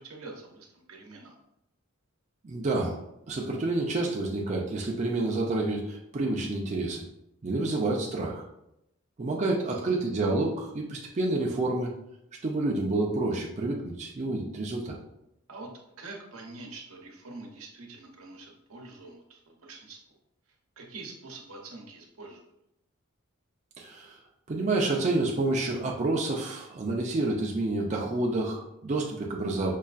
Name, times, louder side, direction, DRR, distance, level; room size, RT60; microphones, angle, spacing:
voice 1, 0.0-1.3 9.7-10.0 15.5-15.7 16.0-20.2 20.8-22.5, right 3 dB, 85° right, 1 dB, 0.8 m, -45 dB
voice 2, 2.4-3.0 3.3-7.0 7.4-8.5 9.2-11.9 12.4-14.9 23.8-24.2 24.5-29.7, right 2 dB, 35° right, -2 dB, 0.4 m, -29 dB
5.3 x 2.3 x 2.4 m, 0.81 s
head